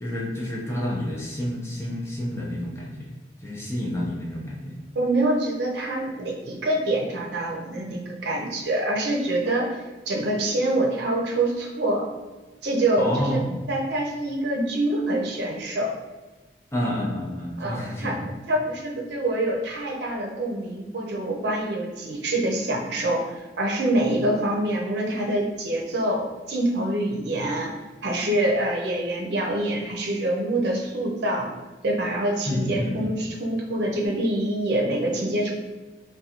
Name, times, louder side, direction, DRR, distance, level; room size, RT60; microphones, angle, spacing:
voice 1, 0.0-3.1 3.4-4.7 13.0-13.6 16.7-18.2 32.5-33.2, left 1 dB, 15° left, -4 dB, 0.5 m, -29 dB
voice 2, 4.9-9.8 10.1-12.1 12.6-13.4 13.7-15.9 17.6-18.2 18.5-26.2 26.5-27.7 28.0-31.5 31.8-35.5, right 1 dB, 80° right, 0 dB, 0.6 m, -25 dB
3.7 x 2.2 x 2.8 m, 1.2 s
head